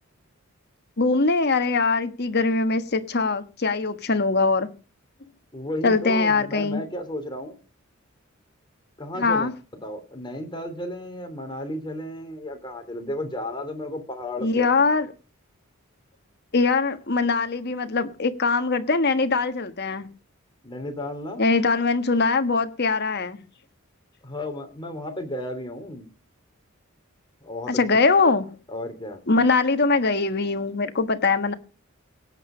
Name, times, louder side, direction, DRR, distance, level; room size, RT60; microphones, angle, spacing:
voice 1, 1.0-4.7 5.8-6.8 9.2-9.5 14.4-15.1 16.5-20.1 21.4-23.4 27.7-28.5 29.3-31.5, left 3 dB, 50° left, 1.5 m, -22 dB
voice 2, 5.5-7.6 9.0-9.5 9.8-14.7 20.6-21.4 24.2-26.1 27.4-27.8 28.7-29.2, left 1 dB, 20° left, 3.1 m, -33 dB
17.5 x 8.6 x 5.0 m
head